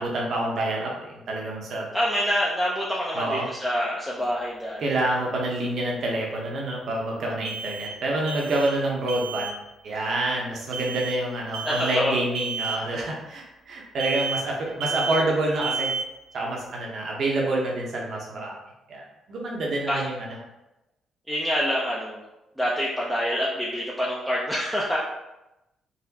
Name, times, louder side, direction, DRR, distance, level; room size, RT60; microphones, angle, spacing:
voice 1, 0.0-1.9 3.1-3.5 4.8-9.6 9.8-15.9 16.3-18.6 18.9-20.4, right 2 dB, 65° right, -2 dB, 0.9 m, -27 dB
voice 2, 1.9-4.8 11.6-12.1 19.9-20.0 21.3-22.2 22.6-25.0, equal, ahead, -5 dB, 0.5 m, -26 dB
sound 1, 4.2-4.3 7.4-8.0 8.3-8.8 9.1-9.6 10.7-11.2 11.5-12.0 12.3-12.8 14.0-14.5 14.8-15.4 15.6-16.2, right 5 dB, 90° right, 0.4 m, -31 dB
4.0 x 2.2 x 2.8 m, 0.93 s
cardioid pair, 90°, 0 cm